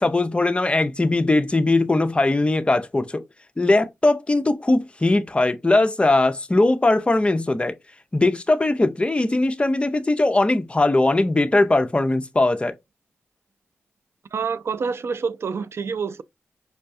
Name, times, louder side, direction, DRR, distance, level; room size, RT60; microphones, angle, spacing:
voice 1, 0.0-3.2 3.6-7.7 8.1-12.7, left 2 dB, 25° left, 0.5 m, -20 dB
voice 2, 14.3-16.2, right 5 dB, 65° right, 0.3 m, -27 dB
5.4 x 2.2 x 2.6 m
cardioid pair, 65°, 5 cm